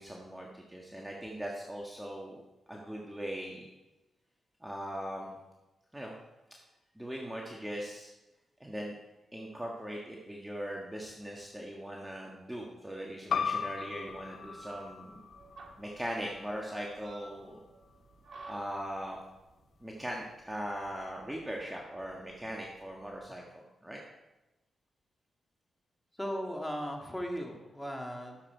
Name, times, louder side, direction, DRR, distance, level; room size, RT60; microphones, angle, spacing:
voice 1, 0.0-2.4 2.7-3.7 4.6-5.4 5.9-6.2 7.0-8.1 8.6-8.9 9.3-15.2 15.8-17.6 18.5-19.2 19.8-24.0, equal, 10° right, -1 dB, 1.6 m, -40 dB
sound 1, 13.3-18.5, left 6 dB, 70° left, 0.6 m, -38 dB
sound 2, 14.1-23.3, right 2 dB, 65° right, 1.8 m, -53 dB
voice 2, 26.1-28.5, equal, 5° left, 1 dB, 2.3 m, -37 dB
12.0 x 7.5 x 4.6 m, 1.0 s
cardioid pair, 60°, 0 cm